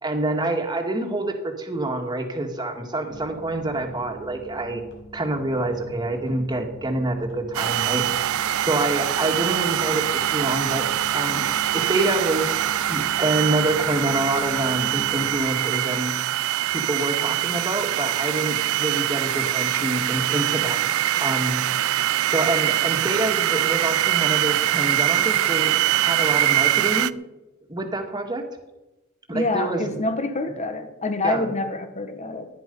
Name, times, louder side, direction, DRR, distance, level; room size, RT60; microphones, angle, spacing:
voice 1, 0.0-4.8 5.1-8.1 8.6-12.6 12.9-16.1 16.7-20.8 21.2-21.6 22.3-27.1 27.7-28.5 29.3-29.9 31.2-31.5, right 2 dB, 20° right, 3 dB, 2.1 m, -27 dB
sound 1, 3.1-15.3, equal, 60° left, 5.4 m, -44 dB
sound 2, 7.5-27.1, right 12 dB, 65° right, 0.4 m, -23 dB
voice 2, 29.3-32.5, left 2 dB, 30° left, 8 dB, 1.6 m, -26 dB
18.0 x 11.0 x 5.5 m, 1.0 s
head